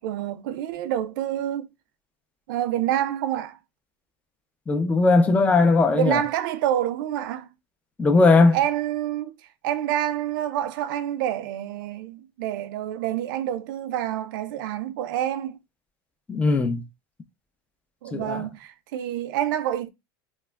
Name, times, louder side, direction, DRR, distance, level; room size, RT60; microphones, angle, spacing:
voice 1, 0.0-1.7 2.5-3.6 5.9-7.5 8.5-9.4 9.6-15.6 18.0-19.9, right 11 dB, 80° right, 0.4 m, -27 dB
voice 2, 4.7-6.2 8.0-8.6 16.3-16.8 18.1-18.4, left 3 dB, 15° left, 0.4 m, -18 dB
2.2 x 2.0 x 3.2 m
supercardioid pair, 130°, 11 cm